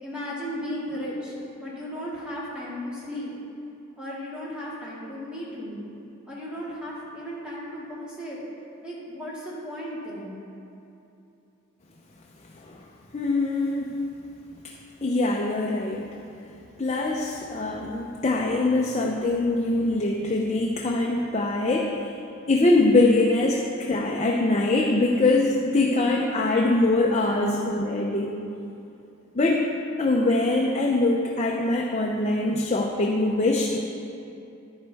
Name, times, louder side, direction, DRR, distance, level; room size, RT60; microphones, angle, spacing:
voice 1, 0.0-3.3 4.0-5.8 6.3-8.4 8.8-10.3, equal, 5° right, -8 dB, 2.1 m, -35 dB
voice 2, 13.1-14.0 15.0-16.1 16.8-22.1 22.5-28.4 29.3-29.6 30.0-33.8, left 2 dB, 35° left, -1 dB, 0.6 m, -23 dB
11.0 x 9.8 x 3.4 m, 2.8 s
head